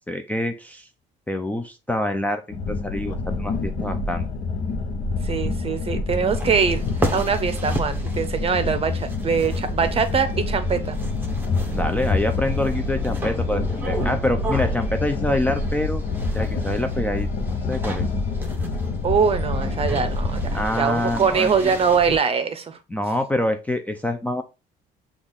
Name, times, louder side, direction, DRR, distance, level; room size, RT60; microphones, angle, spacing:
voice 1, 0.1-0.9 1.3-2.4 2.7-4.2 11.7-16.0 16.3-17.3 17.7-18.1 20.5-21.5 22.9-24.4, left 1 dB, 10° left, 6 dB, 0.4 m, -26 dB
sound 1, 2.5-20.6, left 3 dB, 60° left, 0.8 m, -27 dB
voice 2, 5.2-6.8 7.1-11.0 19.0-22.8, right 6 dB, 35° right, 10 dB, 0.7 m, -23 dB
sound 2, 6.3-22.2, right 1 dB, 10° right, 0.9 m, -34 dB
6.0 x 2.4 x 3.5 m, 0.30 s
cardioid pair, 110°, 17 cm